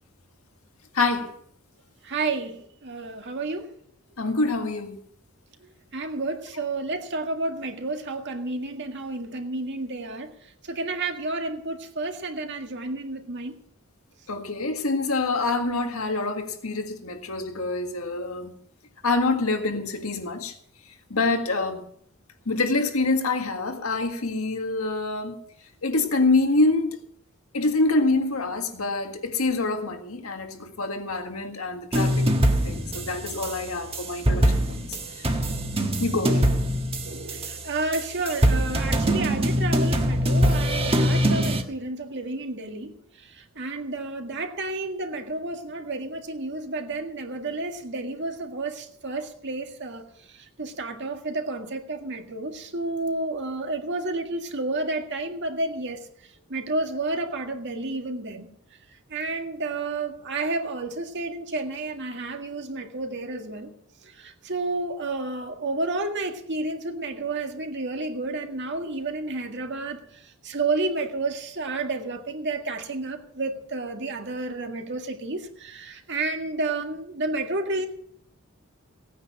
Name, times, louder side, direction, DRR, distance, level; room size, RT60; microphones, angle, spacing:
voice 1, 0.9-1.3 4.2-5.0 14.3-18.5 19.0-20.5 21.1-21.9 22.5-25.4 25.8-27.0 27.5-32.3 32.6-34.6 35.2-35.3 36.0-36.5, left 3 dB, 80° left, 1.8 m, -26 dB
voice 2, 2.0-3.7 5.9-10.3 10.6-13.5 37.0-56.1 56.5-58.5 59.1-63.7 64.0-77.9, right 2 dB, 55° right, 1.9 m, -31 dB
sound 1, 31.9-41.6, equal, 30° right, 1.4 m, -23 dB
17.0 x 9.4 x 6.1 m
head